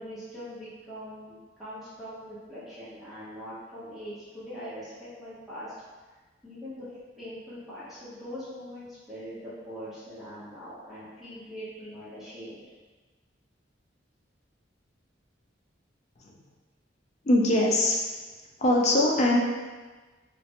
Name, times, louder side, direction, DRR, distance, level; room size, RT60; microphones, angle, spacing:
voice 1, 0.0-5.7 6.4-6.9 7.2-12.6, equal, ahead, -13 dB, 0.8 m, -42 dB
voice 2, 17.2-18.0 18.6-19.4, left 1 dB, 40° left, 0 dB, 0.4 m, -22 dB
3.1 x 2.4 x 2.8 m, 1.3 s
head